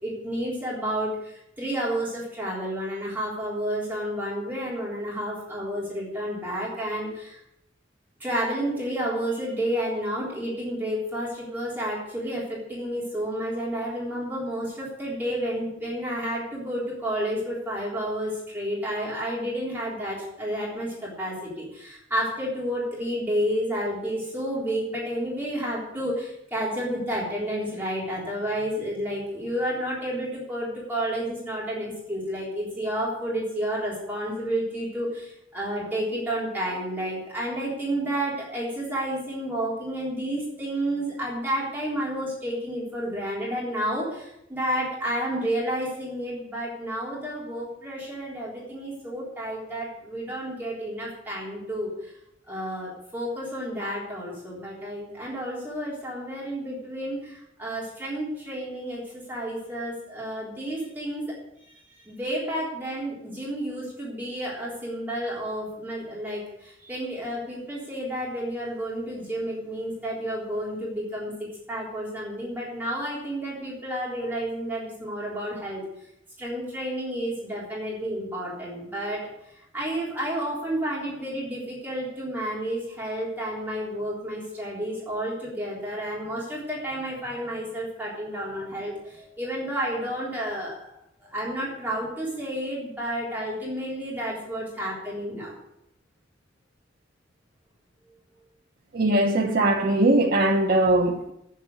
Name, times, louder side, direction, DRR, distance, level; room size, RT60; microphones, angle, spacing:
voice 1, 0.0-7.4 8.2-52.1 52.5-61.2 61.9-71.3 71.7-75.8 76.4-79.3 79.7-90.9 91.2-95.5, right 1 dB, 10° right, 3.6 m, -31 dB
voice 2, 98.9-101.3, right 1 dB, 50° right, 0.8 m, -21 dB
9.1 x 7.5 x 8.0 m
head